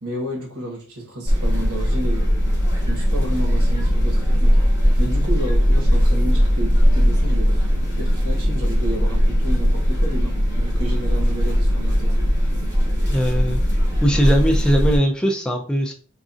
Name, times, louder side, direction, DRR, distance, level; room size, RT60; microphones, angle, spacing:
voice 1, 0.0-2.3 2.8-4.6 5.0-12.2, right 1 dB, 85° right, 1.1 m, -31 dB
sound 1, 1.3-15.0, equal, 15° right, 1.0 m, -19 dB
voice 2, 13.1-13.6 14.0-15.9, equal, 5° left, 0.3 m, -20 dB
4.0 x 2.4 x 2.4 m
head